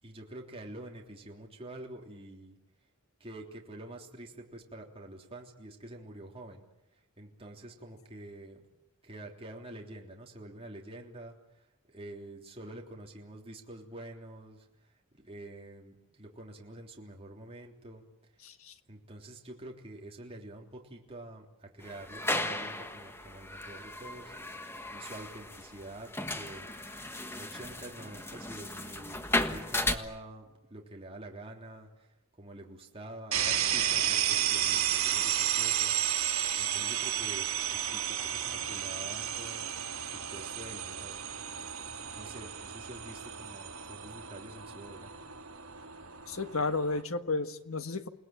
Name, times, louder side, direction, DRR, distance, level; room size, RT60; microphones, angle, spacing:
voice 1, 0.0-2.6 3.2-6.6 6.9-8.6 9.0-18.0 18.9-24.3 24.6-26.7 27.2-41.2 42.0-45.1, right 1 dB, 25° right, 0 dB, 3.4 m, -47 dB
voice 2, 18.4-18.7 46.3-48.1, left 3 dB, 70° left, 8 dB, 1.6 m, -32 dB
sound 1, 21.8-29.9, left 1 dB, 10° left, 1.4 m, -35 dB
sound 2, 33.3-47.0, right 10 dB, 75° right, 3.2 m, -32 dB
29.0 x 19.0 x 9.0 m, 0.90 s
head